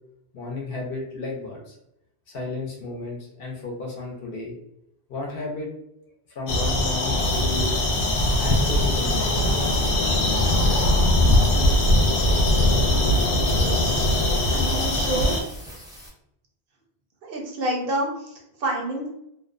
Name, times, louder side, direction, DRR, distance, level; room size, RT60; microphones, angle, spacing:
voice 1, 0.3-1.8 2.3-4.5 5.1-5.7 6.3-7.8 8.4-9.5, left 3 dB, 65° left, 0 dB, 0.8 m, -33 dB
sound 1, 6.5-15.4, left 1 dB, 90° left, 0.9 m, -21 dB
sound 2, 7.2-16.1, equal, 5° right, 0.6 m, -42 dB
voice 2, 13.3-14.0 14.5-15.4 17.2-19.1, right 1 dB, 65° right, 0 dB, 0.7 m, -29 dB
2.5 x 2.1 x 2.4 m, 0.77 s
omnidirectional pair, 1.1 m